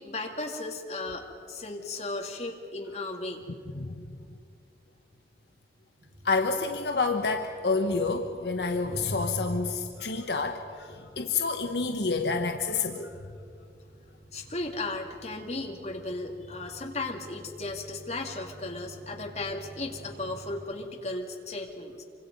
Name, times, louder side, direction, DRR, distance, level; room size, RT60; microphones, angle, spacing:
voice 1, 0.0-3.5 14.3-22.0, left 2 dB, 40° left, 1 dB, 2.5 m, -35 dB
sound 1, 6.0-20.6, right 1 dB, 80° right, 7.6 m, -52 dB
voice 2, 6.2-13.1, left 4 dB, 70° left, 4 dB, 1.2 m, -28 dB
27.0 x 25.0 x 5.4 m, 2.3 s
head